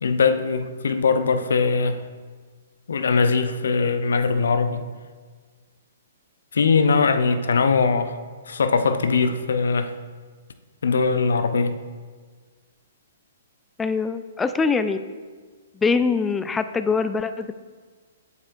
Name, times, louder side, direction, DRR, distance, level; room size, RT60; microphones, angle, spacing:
voice 1, 0.0-2.0 2.9-4.8 6.5-8.2 8.5-9.9 10.8-11.8, left 4 dB, 65° left, 10 dB, 0.6 m, -21 dB
voice 2, 13.8-15.0 15.8-17.5, left 4 dB, 10° left, 11 dB, 0.3 m, -23 dB
8.2 x 7.7 x 2.5 m, 1.5 s
figure-of-eight pair, 120°, 0 cm